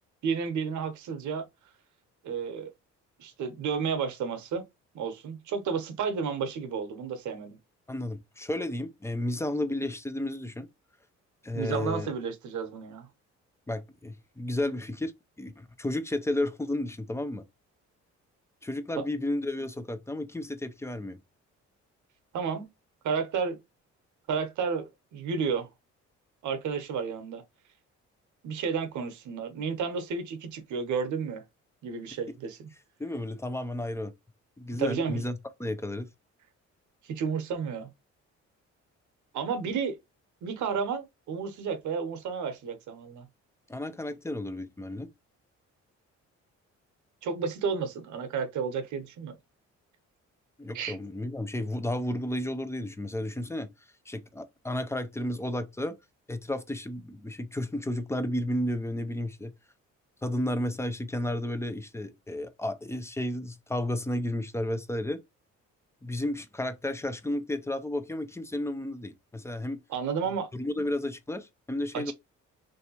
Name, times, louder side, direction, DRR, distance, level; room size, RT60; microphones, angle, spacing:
voice 1, 0.2-1.5 2.2-2.7 3.2-4.6 4.9-7.6 11.5-13.1 19.0-19.1 22.3-22.7 23.0-23.6 24.3-25.7 26.4-27.4 28.4-31.4 31.8-32.7 34.8-35.2 37.0-37.9 39.3-40.0 40.4-43.3 47.2-49.3 50.7-51.0 69.9-70.5 71.9-72.1, right 6 dB, 75° right, 0.9 m, -32 dB
voice 2, 7.9-10.7 11.4-12.1 13.7-15.1 15.4-17.4 18.6-21.2 33.0-34.1 34.6-36.1 43.7-45.1 50.6-53.7 54.1-55.9 56.3-59.5 60.2-65.2 66.0-69.8 70.5-72.1, left 1 dB, 10° left, 0.5 m, -32 dB
3.3 x 2.7 x 2.8 m
cardioid pair, 90°, 30 cm